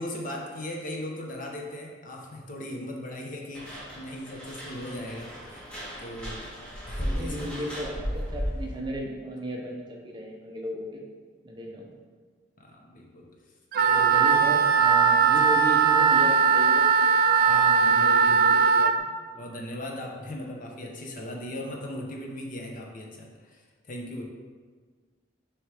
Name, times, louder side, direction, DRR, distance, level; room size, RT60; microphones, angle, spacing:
voice 1, 0.0-5.6 6.0-6.5 6.9-7.5 12.6-13.3 14.0-14.3 17.5-18.8 19.4-24.2, left 1 dB, 45° left, 0 dB, 0.8 m, -38 dB
sound 1, 3.5-8.8, equal, 5° left, 1.4 m, -35 dB
voice 2, 7.0-11.0 11.4-11.9 13.7-19.1, equal, 25° right, 0 dB, 0.7 m, -36 dB
Wind instrument woodwind instrument, 13.7-18.9, right 6 dB, 50° right, 0.3 m, -20 dB
6.4 x 3.2 x 4.8 m, 1.5 s
head